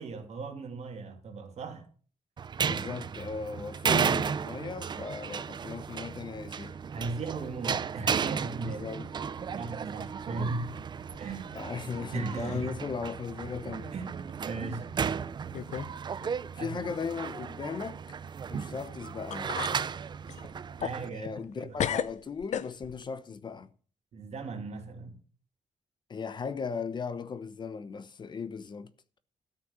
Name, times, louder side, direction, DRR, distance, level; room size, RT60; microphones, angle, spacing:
voice 1, 0.0-1.8 6.9-8.9 9.5-10.7 11.2-11.6 12.1-12.7 13.9-14.9 16.6-16.9 20.8-21.7 24.1-25.2, right 3 dB, 60° right, 2.9 m, -37 dB
sound 1, 2.4-21.1, right 6 dB, 35° right, 0.5 m, -34 dB
voice 2, 2.6-6.8 8.6-9.1 11.5-13.9 16.5-18.2 18.5-19.6 21.0-23.7 26.1-28.9, left 5 dB, 35° left, 0.9 m, -37 dB
sound 2, 11.1-12.0 12.3-12.8 13.2-13.3 14.2-14.3 15.0-15.1 15.5-15.9 16.2-16.3 18.9-19.0 19.3-19.8 20.3-21.5 21.8-23.1, left 9 dB, 70° left, 0.8 m, -35 dB
13.0 x 5.9 x 9.4 m
wide cardioid pair, 160°, 12 cm